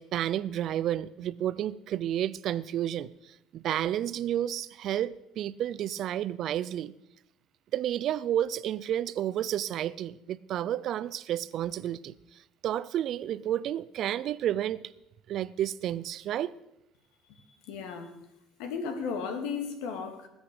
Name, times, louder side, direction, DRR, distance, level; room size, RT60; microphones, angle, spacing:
voice 1, 0.0-3.1 3.5-6.9 7.7-12.1 12.6-14.9 15.3-16.5, right 11 dB, 55° right, 0.5 m, -31 dB
voice 2, 17.3-18.1 18.6-20.3, left 5 dB, 85° left, 2.1 m, -35 dB
19.5 x 8.1 x 5.1 m
cardioid pair, 125°, 0 cm